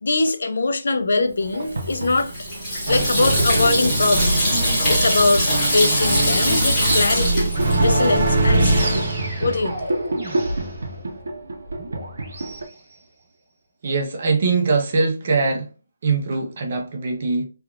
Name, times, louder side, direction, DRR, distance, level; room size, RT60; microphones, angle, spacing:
voice 1, 0.0-2.3 2.9-4.5 4.9-7.5 7.8-9.1 9.4-9.9, left 3 dB, 60° left, 0.4 m, -22 dB
sound 1, 1.4-2.6 3.5-4.7 5.2-12.6, right 1 dB, 85° right, 0.6 m, -31 dB
Water tap faucet / Sink (filling or washing), 1.6-8.4, equal, 10° left, 1.1 m, -22 dB
sound 2, 2.9-12.6, right 2 dB, 45° right, 1.3 m, -24 dB
voice 2, 13.8-15.7 16.0-17.4, right 4 dB, 30° right, 0.5 m, -22 dB
3.3 x 2.3 x 2.3 m
hypercardioid pair, 180°, 0 cm